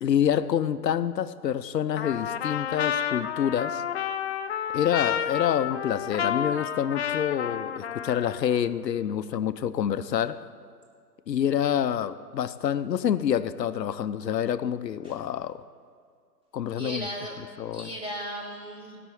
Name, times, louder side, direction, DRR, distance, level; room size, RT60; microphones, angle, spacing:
voice 1, 0.0-3.8 4.7-10.4 11.3-15.6 16.5-17.0 17.6-17.9, left 9 dB, 75° left, 12 dB, 0.8 m, -27 dB
Trumpet, 2.0-8.6, left 8 dB, 40° left, 0.5 m, -30 dB
voice 2, 16.8-17.4 17.7-19.0, right 1 dB, 10° right, -2 dB, 2.1 m, -36 dB
17.0 x 6.1 x 7.7 m, 2.2 s
hypercardioid pair, 135°, 50 cm